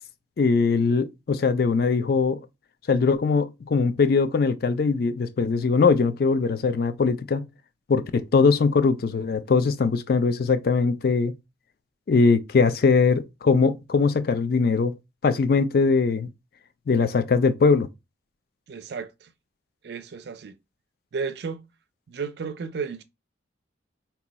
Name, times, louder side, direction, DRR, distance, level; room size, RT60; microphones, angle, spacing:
voice 1, 0.4-2.4 2.9-7.5 7.9-11.3 12.1-14.9 15.2-16.3 16.9-17.9, left 4 dB, 50° left, 0.3 m, -21 dB
voice 2, 18.7-19.3 19.8-20.6 21.1-21.7 22.1-23.0, right 5 dB, 55° right, 0.4 m, -33 dB
2.9 x 2.2 x 3.9 m
head